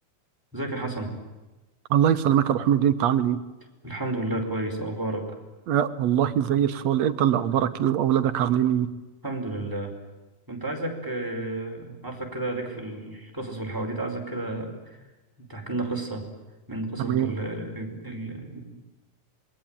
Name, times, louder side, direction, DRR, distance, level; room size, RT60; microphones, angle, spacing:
voice 1, 0.5-1.1 3.8-5.3 9.2-9.9 10.5-15.0 15.4-16.3 16.7-18.6, right 2 dB, 5° right, 1 dB, 5.0 m, -32 dB
voice 2, 1.9-3.4 5.7-8.9 17.0-17.3, right 10 dB, 65° right, 11 dB, 2.1 m, -22 dB
27.0 x 21.5 x 9.1 m, 1.1 s
omnidirectional pair, 3.7 m